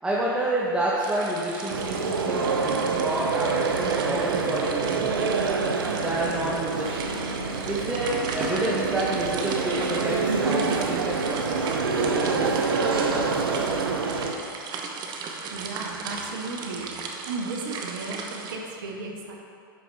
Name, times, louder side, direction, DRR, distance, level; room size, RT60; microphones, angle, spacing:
voice 1, 0.0-5.4 5.9-7.2 7.6-13.7, right 1 dB, 5° right, -6 dB, 1.1 m, -29 dB
sound 1, 1.0-18.6, right 4 dB, 35° right, 0.9 m, -36 dB
sound 2, 1.7-14.3, right 4 dB, 85° right, 0.6 m, -26 dB
voice 2, 15.5-16.9 17.3-19.4, right 3 dB, 65° right, 1 dB, 1.2 m, -34 dB
11.5 x 4.8 x 3.4 m, 2.5 s
hypercardioid pair, 100°, 12 cm